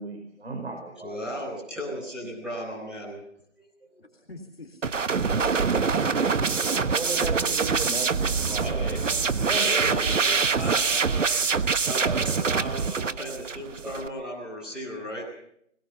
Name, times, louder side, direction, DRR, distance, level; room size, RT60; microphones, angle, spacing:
voice 1, 0.0-1.4 2.2-2.3 5.3-5.8 6.4-10.1 10.6-10.8, right 2 dB, 60° right, 3 dB, 5.0 m, -36 dB
voice 2, 1.0-3.2 3.6-3.7 3.9-4.0 8.6-9.0 9.6-11.3 11.8-15.3, equal, ahead, -9 dB, 5.0 m, -35 dB
voice 3, 4.0-6.2 7.1-7.6 12.4-12.8 14.8-15.1, left 3 dB, 55° left, 3 dB, 3.5 m, -47 dB
sound 1, 4.8-14.1, right 5 dB, 90° right, 1.3 m, -25 dB
22.0 x 21.5 x 6.9 m, 0.72 s
hypercardioid pair, 180°, 36 cm